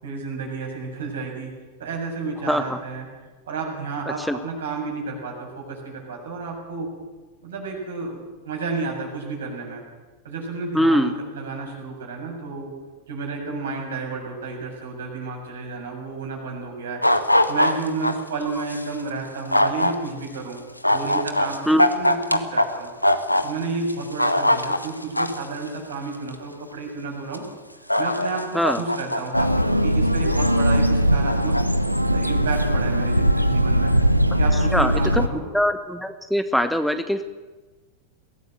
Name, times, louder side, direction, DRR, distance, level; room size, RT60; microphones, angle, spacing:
voice 1, 0.0-1.5 1.8-3.1 3.5-6.9 7.4-9.8 10.2-12.7 13.1-17.0 17.5-20.6 20.9-22.9 23.4-27.4 28.0-34.0 34.3-35.4, right 4 dB, 65° right, 1 dB, 7.1 m, -31 dB
voice 2, 2.5-2.8 4.2-4.4 10.7-11.1 21.7-21.8 28.5-28.8 34.7-35.3 35.5-37.2, equal, ahead, 9 dB, 1.2 m, -22 dB
sound 1, 17.0-18.1 18.7-18.8 19.5-19.9 20.8-22.6 23.0-23.4 23.9-25.4 26.3-26.4 27.3-27.4 27.9-29.5 30.0-30.8 31.3-31.6, left 1 dB, 90° left, 1.3 m, -21 dB
sound 2, 29.3-35.3, equal, 90° right, 1.1 m, -20 dB
23.0 x 17.0 x 7.8 m, 1.3 s
figure-of-eight pair, 90°, 0 cm